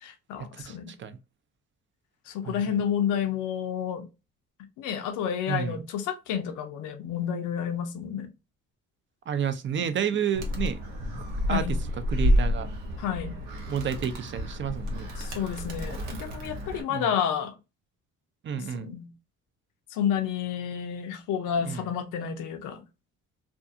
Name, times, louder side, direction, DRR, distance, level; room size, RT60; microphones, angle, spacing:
voice 1, 0.0-0.9 2.3-4.1 4.8-8.3 11.5-11.8 13.0-13.4 15.2-17.5 18.6-19.1 19.9-22.8, left 8 dB, 90° left, 0.6 m, -30 dB
voice 2, 0.5-1.2 2.4-2.8 5.5-5.8 9.3-10.8 11.2-11.8 12.1-12.7 13.7-15.1 16.9-17.1 18.4-18.9 21.6-21.8, right 8 dB, 40° right, 0.4 m, -31 dB
Animal, 10.3-16.8, equal, 90° right, 0.8 m, -29 dB
2.6 x 2.4 x 2.5 m
cardioid pair, 90°, 30 cm